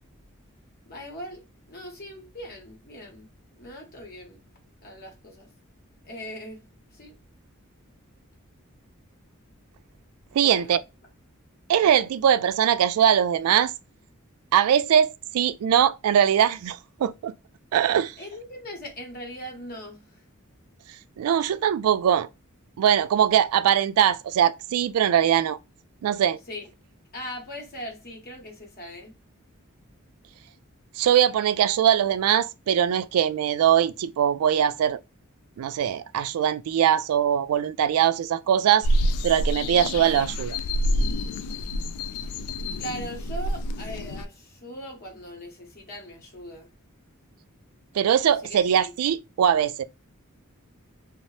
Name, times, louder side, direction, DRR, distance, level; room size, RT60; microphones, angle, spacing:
voice 1, 0.9-4.4 4.8-5.5 6.0-6.7 6.9-7.2 10.4-10.7 18.2-20.2 26.5-26.7 27.1-29.1 42.8-46.7 48.4-48.9, equal, 45° left, 0.9 m, -40 dB
voice 2, 10.3-10.8 11.7-13.7 14.5-17.3 17.7-18.1 21.2-22.3 22.8-25.6 26.0-26.4 31.0-35.0 35.6-38.9 39.2-40.6 47.9-49.8, right 9 dB, 80° right, 0.3 m, -21 dB
sound 1, 38.8-44.3, equal, 90° left, 0.3 m, -27 dB
2.7 x 2.0 x 3.0 m
head